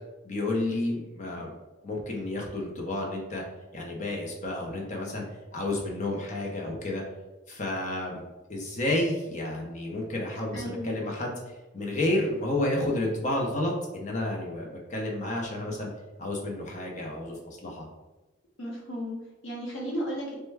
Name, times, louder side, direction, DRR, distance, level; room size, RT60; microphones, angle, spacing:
voice 1, 0.2-1.5 1.8-3.4 3.7-5.2 5.5-7.0 7.5-8.2 8.5-11.3 11.7-15.9 16.2-17.9, left 1 dB, 35° left, -1 dB, 0.6 m, -30 dB
voice 2, 10.5-10.9 18.6-20.4, equal, 75° left, -2 dB, 0.8 m, -34 dB
3.1 x 2.2 x 3.3 m, 1.1 s
head